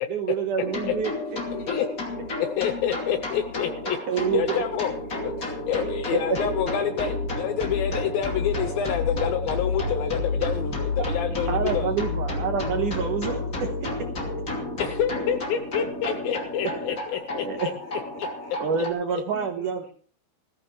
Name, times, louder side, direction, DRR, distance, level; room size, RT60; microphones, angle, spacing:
voice 1, 0.1-1.1 4.1-4.6 6.1-6.4 11.5-13.4 17.4-17.7 18.6-19.9, right 7 dB, 65° right, 4 dB, 2.1 m, -27 dB
sound 1, 0.6-18.9, left 2 dB, 25° left, 2.1 m, -30 dB
voice 2, 1.5-2.4 4.5-5.0 15.8-18.7 19.3-19.9, left 5 dB, 70° left, 0 dB, 6.0 m, -48 dB
voice 3, 2.4-4.0 4.3-4.9 5.2-11.9 14.8-17.5, left 9 dB, 85° left, 9 dB, 2.0 m, -27 dB
19.0 x 15.0 x 3.2 m, 0.42 s
omnidirectional pair, 5.1 m